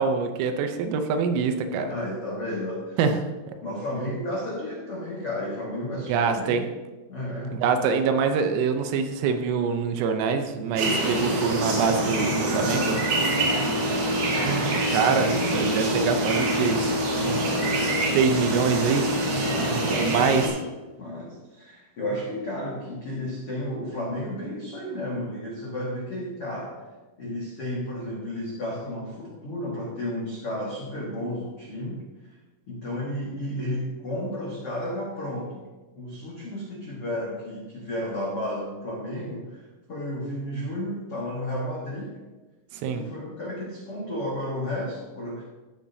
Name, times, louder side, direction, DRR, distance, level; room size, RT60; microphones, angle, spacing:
voice 1, 0.0-1.9 3.0-3.3 6.1-6.6 7.6-13.0 14.4-16.9 17.2-17.5 18.1-19.1 19.7-20.6 42.7-43.0, right 5 dB, 80° right, 7 dB, 3.3 m, -25 dB
voice 2, 1.9-3.0 3.6-6.7 7.1-7.8 13.4-13.7 17.3-17.7 19.4-20.3 21.0-26.7 27.2-32.3 32.7-35.7 35.9-42.1 42.9-45.4, left 1 dB, 80° left, -5 dB, 1.2 m, -33 dB
sound 1, 10.8-20.5, right 1 dB, 50° right, 2.7 m, -25 dB
14.5 x 10.0 x 2.8 m, 1.2 s
omnidirectional pair, 5.8 m